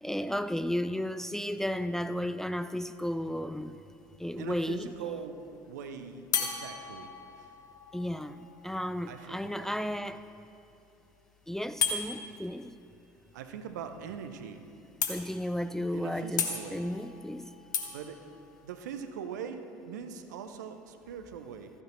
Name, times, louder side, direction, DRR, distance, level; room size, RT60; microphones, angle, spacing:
voice 1, 0.0-3.8 4.2-5.0 7.9-10.2 11.5-12.8 15.1-17.5, equal, 5° left, 12 dB, 0.3 m, -33 dB
sound 1, 3.5-4.0 6.3-10.0 11.8-12.0 14.0-14.1 14.4-14.5 15.0-15.6 16.4-19.1, left 6 dB, 75° left, 1.0 m, -36 dB
voice 2, 4.4-7.5 9.1-10.0 13.3-14.6 15.9-16.8 17.9-18.2 18.6-21.7, right 7 dB, 70° right, 8 dB, 0.7 m, -42 dB
14.0 x 9.8 x 4.5 m, 2.9 s
figure-of-eight pair, 65°, 10 cm